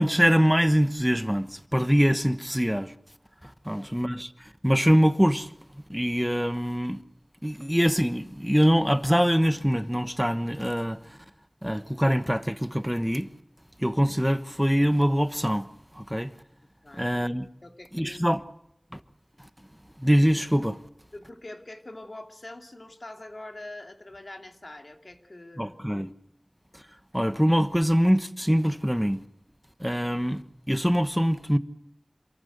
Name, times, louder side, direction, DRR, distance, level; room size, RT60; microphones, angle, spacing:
voice 1, 0.0-2.9 3.6-4.3 4.6-5.5 5.9-7.0 7.4-11.2 11.6-13.3 13.8-15.7 15.9-16.3 16.9-17.5 17.9-18.4 18.9-19.0 20.0-20.8 25.6-26.1 27.1-29.2 29.8-30.4 30.7-31.6, equal, 5° right, 1.1 m, -23 dB
voice 2, 16.8-17.3 17.6-18.4 21.1-25.8, left 2 dB, 60° left, 2.5 m, -44 dB
27.0 x 14.0 x 8.0 m
wide cardioid pair, 45°, 0 cm